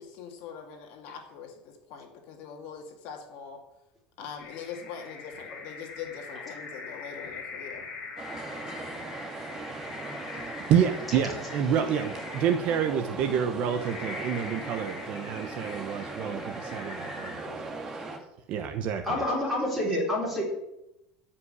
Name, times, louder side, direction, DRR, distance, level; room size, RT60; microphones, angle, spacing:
voice 1, 0.0-3.6 4.2-7.9, left 7 dB, 50° left, 2 dB, 2.3 m, -42 dB
sound 1, 4.4-17.9, left 4 dB, 30° left, 4.2 m, -43 dB
sound 2, 8.2-18.2, right 3 dB, 20° right, 1.7 m, -39 dB
voice 2, 10.3-17.4 18.5-19.2, right 8 dB, 40° right, 8 dB, 1.0 m, -28 dB
voice 3, 19.1-20.4, left 1 dB, ahead, -5 dB, 4.9 m, -28 dB
14.5 x 5.9 x 9.8 m, 0.88 s
cardioid pair, 180°, 3 cm